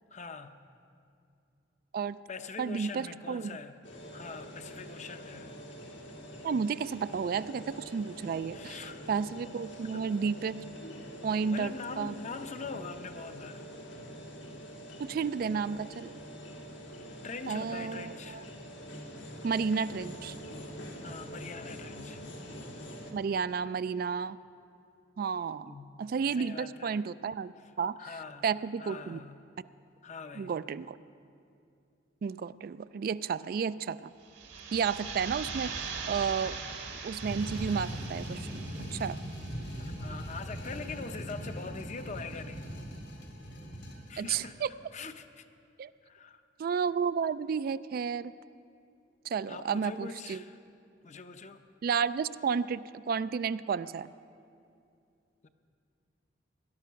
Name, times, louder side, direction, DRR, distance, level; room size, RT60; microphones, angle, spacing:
voice 1, 0.1-0.6 2.3-3.8 4.1-5.6 8.5-9.0 9.9-10.1 11.5-13.6 17.2-18.5 21.0-22.2 25.7-26.0 26.3-27.0 28.0-28.5 28.8-29.5 30.0-30.6 36.4-36.5 39.8-42.8 44.1-44.6 44.9-45.4 46.0-46.4 49.5-50.6 51.0-51.6 55.4-55.5, left 4 dB, 40° left, 8 dB, 0.7 m, -43 dB
voice 2, 2.6-3.6 6.4-8.8 9.1-10.6 11.2-12.1 15.0-16.1 17.5-18.4 19.4-20.3 23.1-24.4 25.2-25.7 26.0-28.0 28.4-29.2 30.3-31.0 32.2-34.1 34.7-36.6 36.9-38.7 38.9-39.2 44.2-44.7 45.8-45.9 46.6-48.3 49.3-50.4 51.8-54.1, right 6 dB, 55° right, 15 dB, 0.3 m, -32 dB
sound 1, 3.8-23.1, equal, 90° left, 2.2 m, -45 dB
sound 2, 34.2-39.9, right 5 dB, 80° right, 1.7 m, -41 dB
sound 3, 37.1-44.5, equal, 75° left, 2.5 m, -40 dB
18.5 x 11.5 x 5.8 m, 2.5 s
head